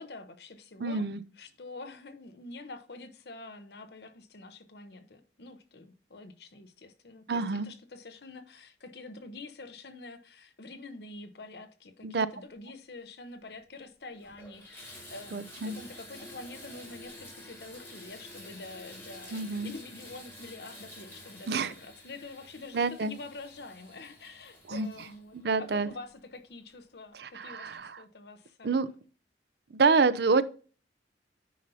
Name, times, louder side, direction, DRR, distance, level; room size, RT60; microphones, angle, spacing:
voice 1, 0.0-1.0 1.4-28.8, left 3 dB, 65° left, 0.9 m, -46 dB
voice 2, 0.8-1.2 7.3-7.7 12.0-12.3 15.3-15.8 19.3-19.7 21.5-21.7 22.7-23.1 24.7-24.9 25.3-25.9 27.1-28.0 28.6-28.9 29.7-30.4, right 4 dB, 65° right, 0.5 m, -27 dB
Water tap faucet / Bathtub (filling or washing), 13.5-13.6 14.1-26.5 27.1-27.2 27.8-27.9, left 1 dB, 15° left, 3.4 m, -49 dB
9.3 x 5.4 x 2.8 m
head